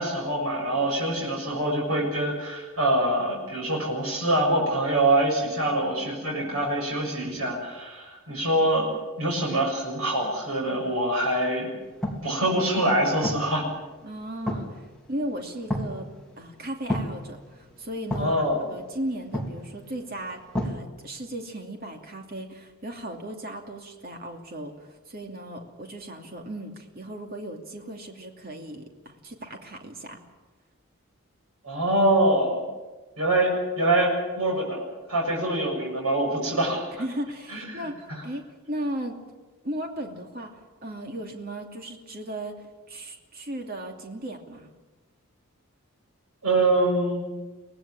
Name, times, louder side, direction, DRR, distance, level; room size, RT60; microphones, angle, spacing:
voice 1, 0.0-8.9 9.2-11.7 12.2-13.6 18.2-18.6 31.6-32.6 33.2-34.8 35.1-36.8 37.5-37.8 46.4-47.2, right 1 dB, 80° right, -1 dB, 7.0 m, -24 dB
sound 1, 11.8-20.8, left 1 dB, 5° left, 3.1 m, -34 dB
voice 2, 14.0-16.1 16.4-30.2 37.0-39.2 39.6-44.7, right 1 dB, 40° right, 3 dB, 2.7 m, -36 dB
24.5 x 18.0 x 8.8 m, 1.2 s
head